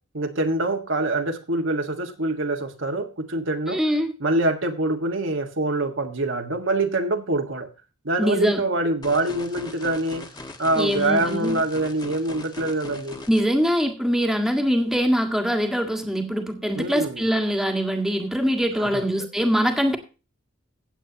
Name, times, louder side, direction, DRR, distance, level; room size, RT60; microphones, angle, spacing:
voice 1, 0.1-3.8 4.2-7.7 8.0-10.3 10.6-13.2 16.8-17.2 18.8-19.0, right 2 dB, 65° right, 1.6 m, -25 dB
voice 2, 3.7-4.1 8.2-8.6 10.8-11.6 13.3-20.0, equal, ahead, 1.7 m, -23 dB
sound 1, 9.0-13.4, left 2 dB, 20° left, 1.6 m, -40 dB
16.0 x 8.6 x 2.8 m
head